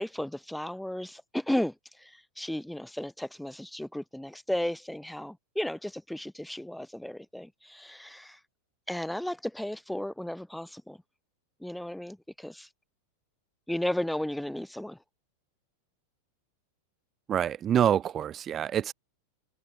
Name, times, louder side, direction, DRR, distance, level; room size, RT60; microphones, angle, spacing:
voice 1, 0.0-8.4 8.9-11.0 11.6-12.7 13.7-15.0, left 1 dB, ahead, 4.5 m, -34 dB
voice 2, 17.3-18.9, right 10 dB, 25° right, 2.2 m, -26 dB
figure-of-eight pair, 90°, 0 cm